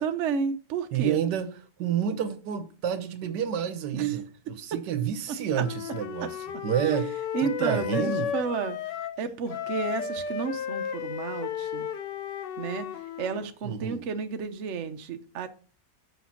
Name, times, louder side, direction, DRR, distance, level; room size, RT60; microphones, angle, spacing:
voice 1, 0.0-1.2 3.9-4.1 5.5-5.6 6.2-6.3 7.3-8.8 9.2-11.9 12.6-12.9 13.2-15.5, right 6 dB, 55° right, 0.9 m, -31 dB
voice 2, 0.9-1.5 1.8-6.4 6.6-7.1 7.4-8.3 13.6-14.0, right 9 dB, 85° right, 1.4 m, -29 dB
Wind instrument woodwind instrument, 5.5-9.2 9.5-13.5, left 8 dB, 90° left, 1.4 m, -34 dB
6.2 x 6.1 x 5.8 m
omnidirectional pair, 1.8 m